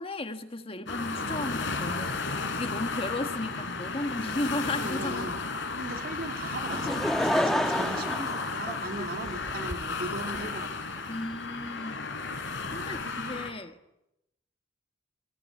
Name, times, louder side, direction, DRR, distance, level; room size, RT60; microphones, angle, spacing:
voice 1, 0.0-5.3 9.0-9.1 11.1-12.1 12.7-13.8, left 2 dB, 30° left, 1.6 m, -35 dB
sound 1, 0.9-13.5, left 3 dB, 75° left, 4.2 m, -34 dB
voice 2, 4.8-5.4 5.8-10.7 13.0-13.2, right 2 dB, 50° right, 2.9 m, -38 dB
Laughter / Crowd, 6.7-9.3 10.0-10.1, equal, ahead, 1.3 m, -28 dB
28.5 x 24.0 x 8.5 m
head